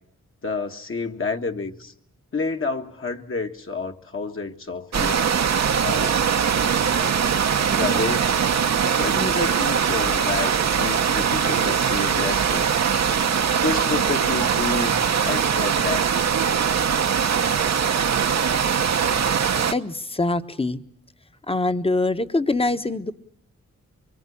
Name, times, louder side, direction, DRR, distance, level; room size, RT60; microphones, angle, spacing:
voice 1, 0.4-1.9 2.3-5.3 5.8-6.2 7.7-8.3 8.9-12.8 13.5-16.2, left 4 dB, 45° left, 3 dB, 1.7 m, -29 dB
sound 1, 4.9-19.7, right 7 dB, 65° right, 1.0 m, -21 dB
voice 2, 19.7-20.8 21.5-23.1, left 2 dB, 20° left, 10 dB, 1.2 m, -24 dB
24.5 x 23.0 x 8.6 m, 0.67 s
cardioid pair, 80°, 29 cm